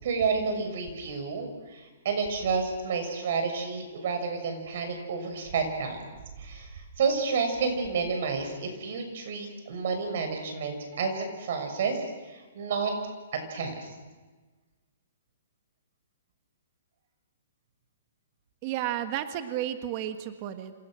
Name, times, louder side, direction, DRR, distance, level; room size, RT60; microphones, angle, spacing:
voice 1, 0.0-6.0 6.4-6.7 7.0-12.0 12.3-12.9 13.3-13.9, right 5 dB, 55° right, 5 dB, 6.5 m, -30 dB
voice 2, 18.6-20.7, right 11 dB, 30° right, 8 dB, 1.5 m, -32 dB
28.0 x 27.0 x 6.4 m, 1.3 s
hypercardioid pair, 165°, 0 cm